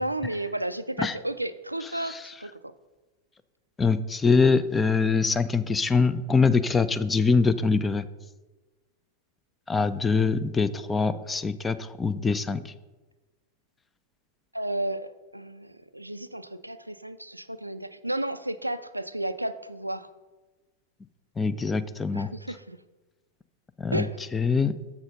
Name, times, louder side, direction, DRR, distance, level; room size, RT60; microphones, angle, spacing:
voice 1, 0.0-2.7 14.5-20.1 22.1-22.8 23.9-24.2, right 1 dB, 85° right, 12 dB, 0.3 m, -33 dB
voice 2, 3.8-8.0 9.7-12.7 21.4-22.3 23.8-24.1 24.3-24.7, left 4 dB, 15° left, 13 dB, 0.4 m, -24 dB
7.1 x 6.1 x 5.2 m, 1.2 s
figure-of-eight pair, 90°, 0 cm